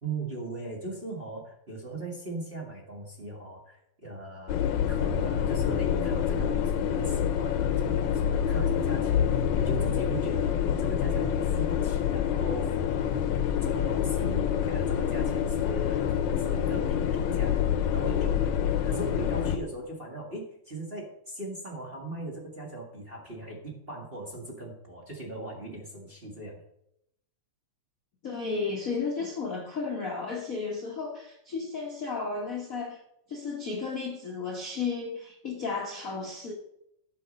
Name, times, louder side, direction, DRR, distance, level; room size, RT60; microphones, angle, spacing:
voice 1, 0.0-13.2 13.6-26.6, right 2 dB, 25° right, 1.5 m, -39 dB
sound 1, 4.5-19.6, left 8 dB, 75° left, 2.0 m, -27 dB
voice 2, 28.2-33.0 33.3-36.5, left 4 dB, 50° left, 1.0 m, -33 dB
12.0 x 6.4 x 5.3 m
omnidirectional pair, 3.5 m